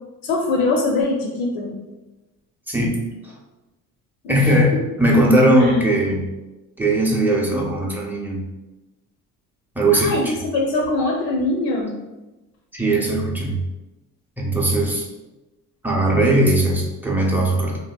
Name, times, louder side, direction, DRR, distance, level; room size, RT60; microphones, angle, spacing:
voice 1, 0.2-1.8 4.2-4.6 5.6-5.8 9.9-12.0, left 2 dB, 85° left, 0 dB, 0.5 m, -22 dB
voice 2, 2.7-3.0 4.3-6.2 6.8-8.4 9.8-10.3 12.7-13.6 14.4-15.1 15.8-17.8, right 1 dB, 5° right, -3 dB, 0.5 m, -19 dB
2.7 x 2.1 x 2.2 m, 1.1 s
supercardioid pair, 85°, 35 cm